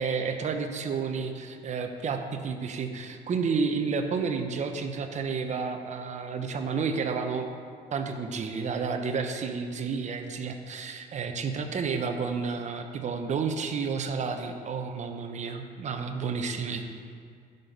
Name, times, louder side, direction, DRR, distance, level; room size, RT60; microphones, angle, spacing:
voice 1, 0.0-7.5 7.9-16.8, right 5 dB, 45° right, 6 dB, 1.0 m, -31 dB
11.0 x 5.9 x 5.4 m, 2.3 s
cardioid pair, 110°, 17 cm